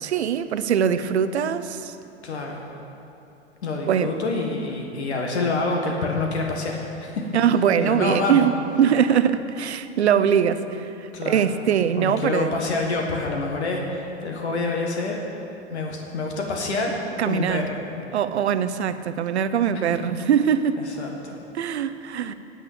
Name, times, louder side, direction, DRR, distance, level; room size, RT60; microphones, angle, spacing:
voice 1, 0.0-2.0 3.9-4.1 7.3-12.5 17.2-17.7 18.1-20.8 21.5-22.3, right 8 dB, 75° right, 12 dB, 0.7 m, -22 dB
voice 2, 2.2-2.7 3.6-7.3 7.8-8.5 11.1-11.5 12.0-15.2 15.7-17.8 19.7-19.8 20.8-21.4, left 3 dB, 75° left, 1 dB, 1.5 m, -27 dB
9.5 x 8.6 x 7.2 m, 2.8 s
figure-of-eight pair, 95°, 33 cm